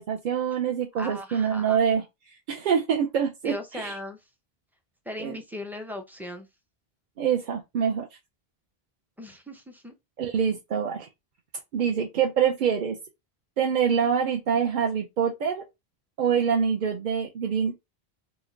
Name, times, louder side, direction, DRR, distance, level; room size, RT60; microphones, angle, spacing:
voice 1, 0.0-2.0 2.5-3.9 5.2-5.4 7.2-8.1 10.2-11.1 11.7-13.0 13.6-15.6 16.2-17.7, right 7 dB, 55° right, 0.7 m, -25 dB
voice 2, 1.0-1.8 3.4-4.2 5.1-6.5 9.2-9.9, left 1 dB, 5° right, 0.3 m, -38 dB
3.1 x 2.1 x 3.7 m
omnidirectional pair, 1.1 m